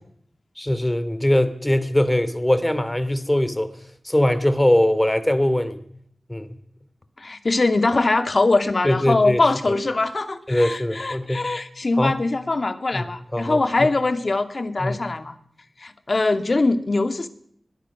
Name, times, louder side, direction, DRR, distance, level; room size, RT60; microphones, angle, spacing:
voice 1, 0.6-3.7 4.0-5.8 6.3-6.6 8.8-9.5 10.5-11.5 12.0-12.2 12.9-13.1 13.3-13.9 14.8-15.0, left 1 dB, 15° left, 13 dB, 2.7 m, -21 dB
voice 2, 7.2-15.3 15.8-17.3, left 3 dB, 50° left, 9 dB, 2.4 m, -22 dB
22.5 x 22.0 x 6.2 m, 0.66 s
wide cardioid pair, 65°, 0 cm